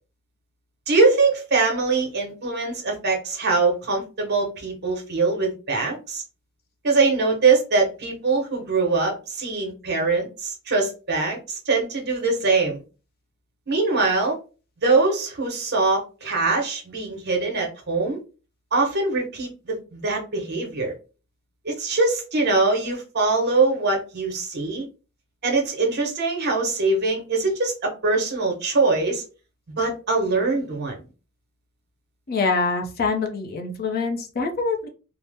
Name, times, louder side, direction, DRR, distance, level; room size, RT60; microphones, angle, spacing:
voice 1, 0.9-6.2 6.8-12.8 13.7-14.4 14.8-18.2 18.7-20.9 21.6-24.8 25.4-29.2 29.8-31.0, right 3 dB, 50° right, 1.0 m, -23 dB
voice 2, 32.3-34.9, left 4 dB, 45° left, 0.5 m, -25 dB
2.7 x 2.0 x 3.4 m
head